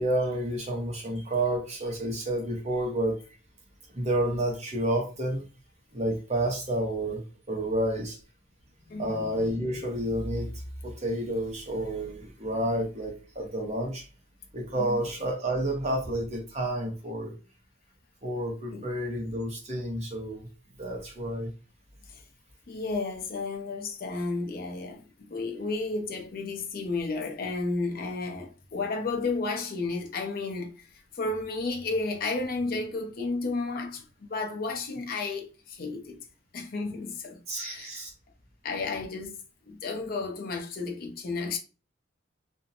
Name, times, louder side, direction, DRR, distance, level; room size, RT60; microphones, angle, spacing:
voice 1, 0.0-3.2 3.9-5.4 5.9-8.2 8.8-10.5 10.8-14.0 14.5-17.3 18.2-20.5 20.8-21.5 37.5-38.1, right 1 dB, 35° right, 0.8 m, -30 dB
voice 2, 8.9-9.2 14.8-15.0 18.7-18.9 22.1-22.2 22.7-30.9 31.1-36.2 36.5-38.0 38.6-39.4 39.7-41.6, left 3 dB, 50° left, 0.5 m, -32 dB
2.5 x 2.0 x 2.6 m
head